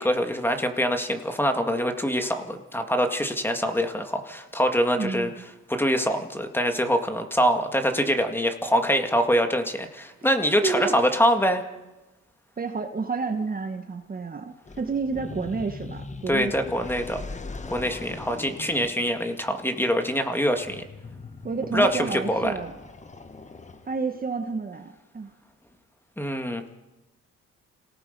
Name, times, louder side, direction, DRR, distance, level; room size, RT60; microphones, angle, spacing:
voice 1, 0.0-5.3 5.7-11.6 16.3-17.2 17.7-20.8 21.7-22.5 26.2-26.7, equal, 5° left, 6 dB, 2.0 m, -24 dB
voice 2, 5.0-5.5 10.6-11.0 12.6-16.5 21.4-22.8 23.9-25.3, right 4 dB, 30° right, 5 dB, 1.3 m, -30 dB
sound 1, 14.6-24.2, left 3 dB, 25° left, 1.4 m, -41 dB
27.5 x 18.0 x 5.3 m, 1.1 s
cardioid pair, 90°, 30 cm